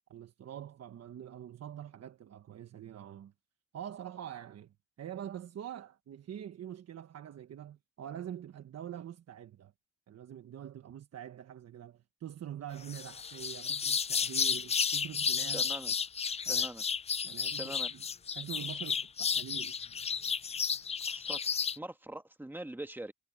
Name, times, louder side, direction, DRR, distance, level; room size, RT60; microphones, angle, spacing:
voice 1, 0.1-3.3 3.7-9.7 10.1-15.6 16.4-16.7 17.2-18.0 18.3-19.7, right 10 dB, 55° right, 1.3 m, -45 dB
sound 1, 12.9-21.8, left 6 dB, 20° left, 0.3 m, -32 dB
voice 2, 15.5-15.9 16.4-16.8 17.5-17.9 21.1-23.1, right 1 dB, 5° right, 1.8 m, -43 dB
cardioid pair, 90°, 30 cm